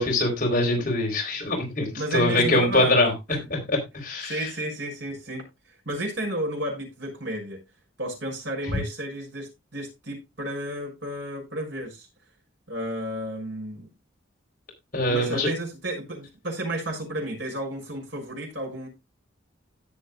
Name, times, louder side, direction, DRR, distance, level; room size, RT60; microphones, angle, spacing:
voice 1, 0.0-3.1 3.5-4.4 8.7-8.8 14.9-15.5, left 1 dB, 40° left, 3.9 m, -23 dB
voice 2, 2.0-3.0 3.3-3.4 4.3-5.4 5.9-7.6 8.0-12.1 12.7-13.9 15.1-18.9, right 1 dB, 60° right, 6.2 m, -32 dB
17.0 x 6.8 x 2.4 m
head